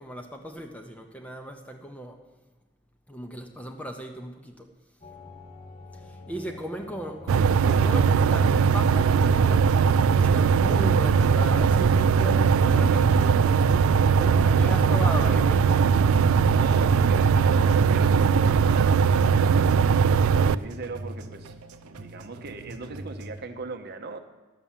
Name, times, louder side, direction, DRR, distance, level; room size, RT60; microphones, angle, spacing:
voice 1, 0.0-2.2 3.1-4.7 5.9-9.8 10.1-13.7 14.2-16.0, equal, 5° left, 4 dB, 0.7 m, -37 dB
sound 1, 5.0-14.5, left 2 dB, 25° left, 1.0 m, -46 dB
sound 2, 7.3-20.6, right 6 dB, 70° right, 0.3 m, -20 dB
sound 3, 7.5-23.4, right 2 dB, 90° right, 0.7 m, -43 dB
voice 2, 14.3-15.2 16.5-19.9 20.2-21.5 21.8-24.2, right 3 dB, 45° right, 6 dB, 0.8 m, -39 dB
11.5 x 7.2 x 7.3 m, 1.2 s
head